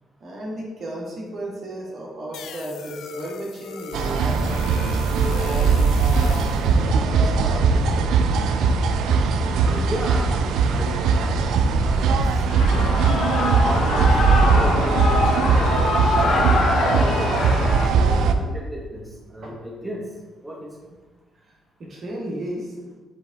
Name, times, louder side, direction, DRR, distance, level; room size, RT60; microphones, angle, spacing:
voice 1, 0.2-4.5 5.0-8.1 19.4-19.5 21.8-22.7, right 1 dB, 50° right, -3 dB, 1.7 m, -33 dB
sound 1, 2.3-6.7, left 6 dB, 80° left, 0.4 m, -38 dB
sound 2, 3.9-18.3, right 4 dB, 85° right, 0.4 m, -20 dB
voice 2, 9.6-12.2 12.4-12.9 13.6-16.6 17.0-20.1 20.4-20.7, equal, 5° right, -3 dB, 1.2 m, -34 dB
Shout / Cheering, 12.5-17.9, left 3 dB, 65° left, 1.1 m, -24 dB
7.4 x 3.5 x 4.0 m, 1.3 s
cardioid pair, 90°, 0 cm